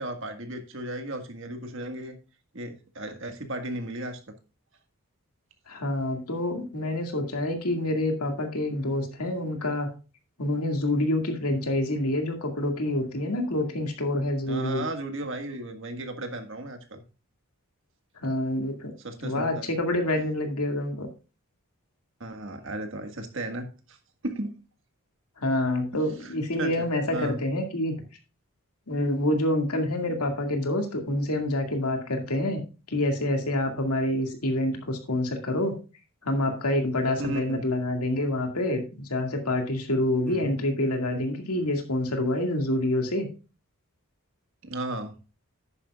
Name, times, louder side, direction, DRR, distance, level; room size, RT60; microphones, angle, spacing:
voice 1, 0.0-2.2 2.5-4.2 14.5-17.0 19.0-19.7 22.2-24.0 24.2-24.6 26.2-26.9 27.1-27.4 37.2-37.6 40.3-40.6 44.6-45.1, right 1 dB, 55° right, 5 dB, 1.7 m, -35 dB
voice 2, 5.7-9.9 10.4-14.8 18.2-18.9 19.2-21.1 25.4-27.9 28.9-32.6 32.9-35.8 36.2-38.8 39.1-43.3, left 1 dB, 90° left, 4 dB, 2.1 m, -27 dB
11.0 x 9.6 x 2.4 m, 0.33 s
head